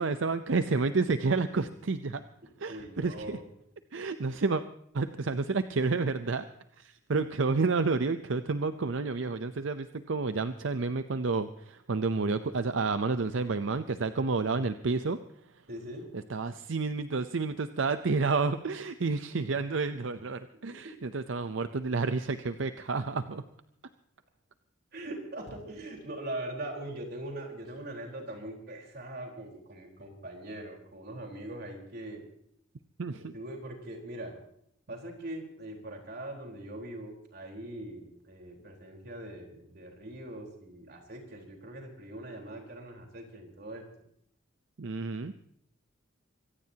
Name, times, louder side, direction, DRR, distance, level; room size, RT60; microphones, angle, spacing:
voice 1, 0.0-2.2 2.6-3.4 3.9-4.6 4.9-6.5 6.8-15.2 16.3-23.4 33.0-33.3 44.8-45.3, right 4 dB, 75° right, 11 dB, 0.6 m, -30 dB
voice 2, 2.7-3.5 4.3-4.5 15.7-16.1 20.7-21.1 24.9-32.2 33.1-34.4 34.9-43.8, right 1 dB, 55° right, 1 dB, 4.1 m, -42 dB
24.5 x 17.0 x 2.9 m, 0.71 s
head